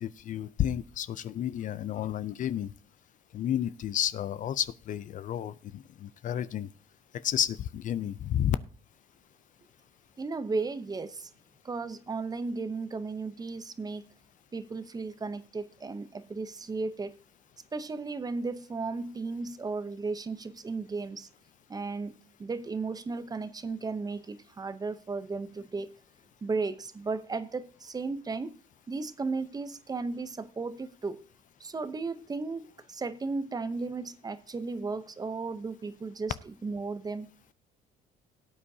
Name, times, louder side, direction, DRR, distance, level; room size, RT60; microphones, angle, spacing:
voice 1, 0.0-2.7 3.3-6.7 7.2-8.6, left 10 dB, 50° left, 0.5 m, -31 dB
voice 2, 10.2-11.3 11.6-14.1 14.5-17.2 17.7-21.3 21.7-22.1 22.4-25.9 26.4-28.5 28.9-31.2 31.6-37.3, right 4 dB, 20° right, 0.7 m, -35 dB
17.5 x 8.5 x 2.7 m
cardioid pair, 110°, 17 cm